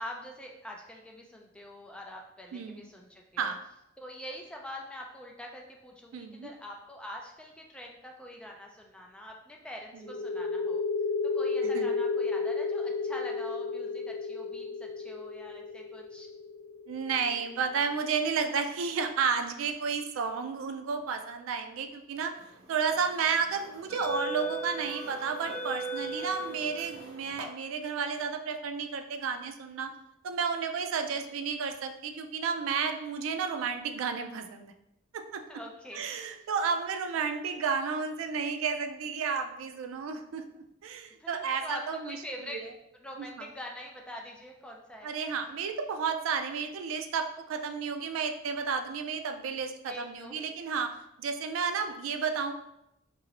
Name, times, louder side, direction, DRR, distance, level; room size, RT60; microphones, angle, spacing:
voice 1, 0.0-3.5 4.0-10.8 11.2-16.3 31.2-31.3 35.5-36.5 41.2-42.6 43.0-45.1 49.9-50.3, left 1 dB, 5° left, 0 dB, 0.3 m, -44 dB
voice 2, 6.1-6.5 11.7-11.9 16.9-22.3 22.7-29.9 30.2-34.7 35.1-35.4 35.9-40.4 40.8-42.2 42.5-42.7 43.2-43.4 45.0-50.9 51.2-52.5, right 5 dB, 80° right, 6 dB, 0.3 m, -32 dB
sound 1, 10.0-17.4, left 4 dB, 85° left, 0.5 m, -32 dB
sound 2, 22.6-22.9 23.6-27.4, right 3 dB, 55° right, 0.8 m, -37 dB
2.9 x 2.6 x 2.9 m, 0.83 s
head